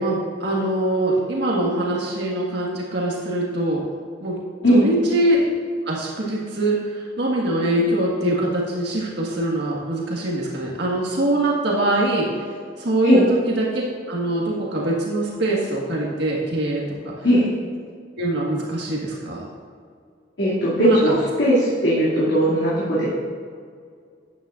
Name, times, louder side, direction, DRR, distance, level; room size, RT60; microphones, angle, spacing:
voice 1, 0.0-3.8 4.2-4.4 4.7-5.4 5.8-12.3 12.8-13.8 14.1-17.2 18.2-19.4 20.8-21.1, right 1 dB, 65° right, -3 dB, 1.7 m, -23 dB
voice 2, 20.4-23.1, equal, 80° left, -9 dB, 2.5 m, -18 dB
12.5 x 9.7 x 2.5 m, 2.2 s
head